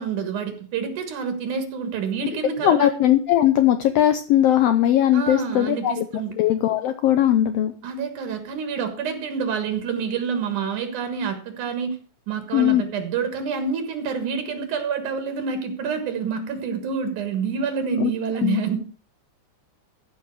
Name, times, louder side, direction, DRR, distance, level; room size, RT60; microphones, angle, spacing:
voice 1, 0.0-3.0 5.1-6.4 7.8-12.0 12.3-18.8, right 6 dB, 80° right, 7 dB, 3.1 m, -27 dB
voice 2, 2.6-6.0 6.4-7.7 12.5-12.8 18.0-18.1 18.4-18.6, left 11 dB, 80° left, 9 dB, 1.5 m, -19 dB
14.5 x 5.6 x 6.3 m, 0.40 s
omnidirectional pair, 3.5 m